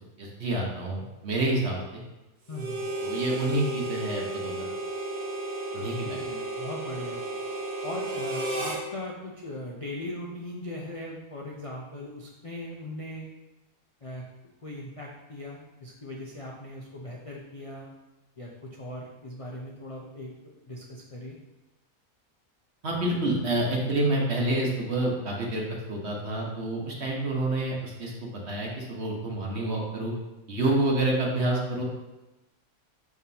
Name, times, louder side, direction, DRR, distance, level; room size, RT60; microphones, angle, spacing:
voice 1, 0.2-2.0 3.0-4.6 5.7-6.2 22.8-25.6 25.9-30.1 30.5-31.8, right 2 dB, 45° right, -2 dB, 1.2 m, -28 dB
voice 2, 2.5-2.9 5.9-7.2 7.8-13.3 14.0-14.2 14.6-17.9 18.4-21.4, left 1 dB, 65° left, -2 dB, 0.3 m, -39 dB
Harmonica, 2.5-8.8, right 2 dB, 75° right, 1.5 m, -33 dB
5.9 x 5.7 x 2.8 m, 1.0 s
omnidirectional pair, 1.7 m